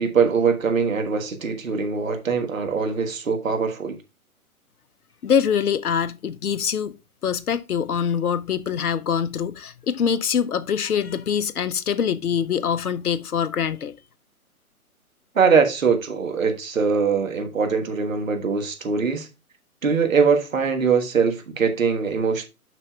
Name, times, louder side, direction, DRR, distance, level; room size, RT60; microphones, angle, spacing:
voice 1, 0.0-3.9 15.3-19.3 19.8-22.5, right 5 dB, 60° right, 1.5 m, -22 dB
voice 2, 5.2-7.0 7.2-13.9, left 7 dB, 80° left, 0.6 m, -24 dB
9.2 x 5.8 x 2.3 m
figure-of-eight pair, 130°, 44 cm